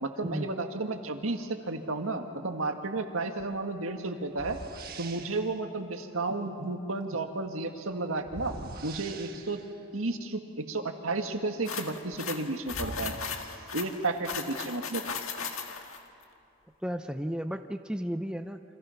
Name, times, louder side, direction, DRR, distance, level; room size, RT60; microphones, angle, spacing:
voice 1, 0.0-4.6 5.0-8.5 8.8-9.6 9.9-13.1 13.7-15.0, right 2 dB, 75° right, 5 dB, 1.9 m, -32 dB
sound 1, 3.4-3.6 4.3-5.6 8.2-9.8 12.1-12.2 12.7-14.3, right 2 dB, 45° right, 1.3 m, -43 dB
sound 2, 11.7-16.0, left 6 dB, 75° left, 1.7 m, -37 dB
voice 2, 16.8-18.6, equal, 5° right, 7 dB, 0.6 m, -33 dB
29.0 x 26.0 x 5.8 m, 2.7 s
head